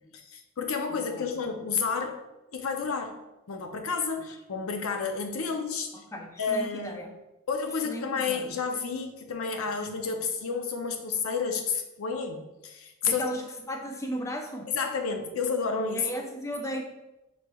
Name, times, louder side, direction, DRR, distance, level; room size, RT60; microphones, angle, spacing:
voice 1, 0.1-2.2 2.5-3.2 3.5-5.9 6.4-7.0 7.5-13.2 14.7-16.1, left 5 dB, 75° left, 5 dB, 0.5 m, -30 dB
voice 2, 0.9-1.3 5.9-7.1 7.8-8.5 13.0-14.7 15.9-16.8, equal, 15° left, 3 dB, 0.4 m, -36 dB
6.0 x 3.1 x 2.2 m, 0.98 s
head